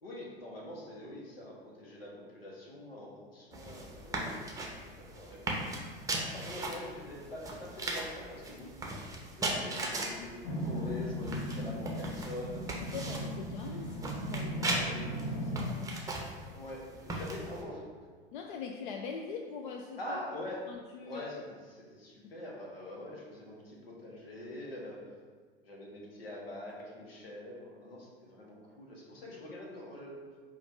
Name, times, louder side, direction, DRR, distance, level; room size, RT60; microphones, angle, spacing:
voice 1, 0.0-5.6 6.3-8.7 9.4-12.6 14.7-15.1 16.5-17.9 20.0-20.6 21.0-21.4 21.7-25.0 25.6-30.2, left 1 dB, 80° left, -3 dB, 1.1 m, -44 dB
sound 1, 3.5-17.6, right 2 dB, 10° right, 0.7 m, -39 dB
sound 2, 10.4-15.6, equal, 45° left, 1.0 m, -37 dB
voice 2, 12.9-14.0 14.3-15.0 15.3-16.0 18.3-20.2 20.7-21.3 22.2-22.3, left 5 dB, 60° left, 2 dB, 0.4 m, -42 dB
5.0 x 2.5 x 4.1 m, 1.5 s
figure-of-eight pair, 85°, 29 cm